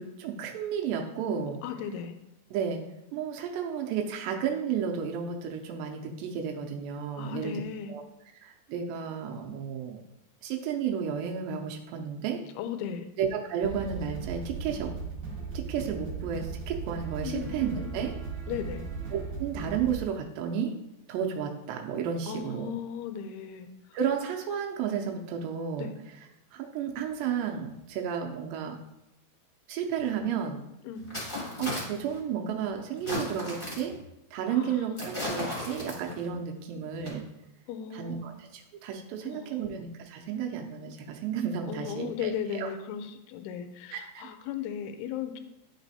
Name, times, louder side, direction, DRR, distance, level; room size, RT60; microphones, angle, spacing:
voice 1, 0.0-1.6 2.5-2.8 3.1-7.6 7.9-8.0 8.4-10.0 10.4-12.4 13.2-14.9 15.5-18.1 19.1-20.7 21.1-22.7 23.9-25.9 26.5-28.8 29.7-30.6 31.6-34.0 34.3-37.3 37.9-42.7 43.9-44.3, right 7 dB, 85° right, 2 dB, 2.0 m, -32 dB
voice 2, 1.6-2.1 7.2-8.0 12.6-13.1 17.2-18.1 18.5-18.9 22.3-23.7 25.8-25.9 30.9-31.1 34.5-34.8 37.7-38.3 39.3-39.7 41.7-45.4, left 8 dB, 85° left, 9 dB, 2.6 m, -36 dB
sound 1, 13.6-20.0, right 5 dB, 65° right, 2.1 m, -37 dB
sound 2, 30.0-30.1 31.0-32.2 33.0-34.0 35.0-36.3 36.9-37.1, left 1 dB, 25° left, 1.3 m, -35 dB
10.5 x 4.0 x 2.7 m, 0.87 s
omnidirectional pair, 4.6 m